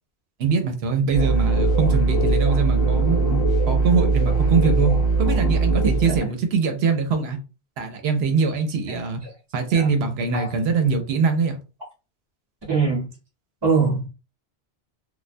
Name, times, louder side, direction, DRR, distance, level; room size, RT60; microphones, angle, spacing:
voice 1, 0.4-3.2 3.7-7.4 7.8-9.2 9.5-11.6, right 5 dB, 70° right, 0.8 m, -23 dB
sound 1, 1.1-6.2, right 3 dB, 55° left, 1.1 m, -20 dB
voice 2, 12.7-13.1 13.6-14.1, right 5 dB, 25° right, 0.8 m, -22 dB
2.3 x 2.1 x 2.5 m
omnidirectional pair, 1.1 m